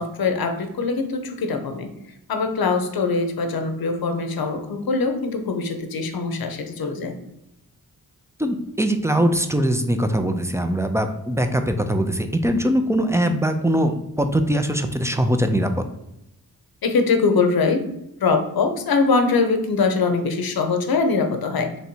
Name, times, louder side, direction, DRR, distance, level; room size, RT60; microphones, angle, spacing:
voice 1, 0.0-1.9 2.3-7.1 16.8-17.9 18.2-21.8, left 4 dB, 65° left, 7 dB, 0.7 m, -22 dB
voice 2, 8.4-15.8, right 1 dB, 10° right, 7 dB, 0.4 m, -21 dB
3.2 x 2.6 x 4.4 m, 0.87 s
cardioid pair, 45°, 39 cm